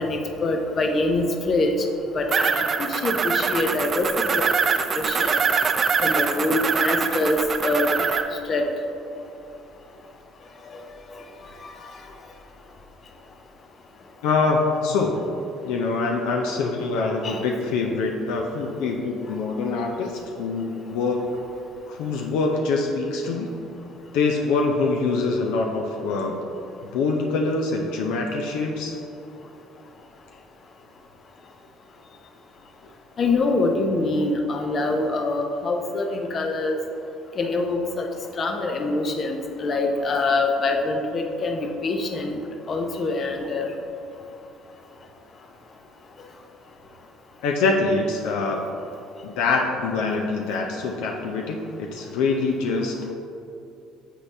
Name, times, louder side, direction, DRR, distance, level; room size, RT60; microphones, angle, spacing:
voice 1, 0.0-1.8 2.1-4.5 4.9-5.3 6.0-7.9 8.5-8.6 17.2-17.4 33.2-36.8 37.4-38.1 38.4-42.3 42.7-43.6, left 2 dB, 45° left, 3 dB, 0.7 m, -24 dB
sound 1, 2.3-8.2, right 5 dB, 40° right, 0.4 m, -23 dB
voice 2, 14.2-21.2 21.9-23.5 24.1-26.4 26.8-29.0 47.4-48.7 49.2-53.1, left 3 dB, 80° left, 1 dB, 0.5 m, -24 dB
7.4 x 4.0 x 3.3 m, 2.7 s
supercardioid pair, 80°, 0 cm